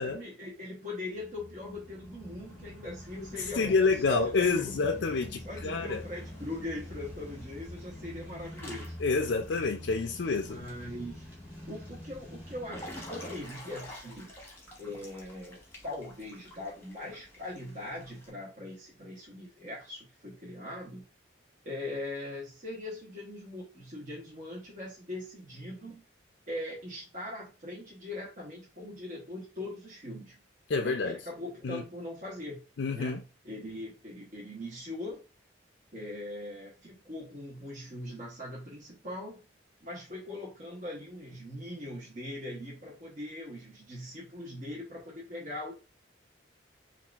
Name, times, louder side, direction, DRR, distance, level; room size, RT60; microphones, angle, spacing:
voice 1, 0.0-4.2 4.4-4.7 5.4-8.9 10.4-11.2 11.7-14.3 14.8-21.0 21.6-26.0 26.5-30.4 30.8-32.6 32.9-35.2 35.9-39.4 39.8-45.7, left 1 dB, 45° right, 1.0 m, -41 dB
sound 1, 1.1-13.4, left 1 dB, 10° right, 1.4 m, -46 dB
Water / Splash splatter / Drip, 3.0-18.3, left 1 dB, 15° left, 1.1 m, -51 dB
voice 2, 3.6-6.0 9.0-10.6 30.7-31.2 31.6-31.8 32.8-33.2, left 4 dB, 80° left, 0.5 m, -28 dB
5.5 x 2.5 x 2.4 m
head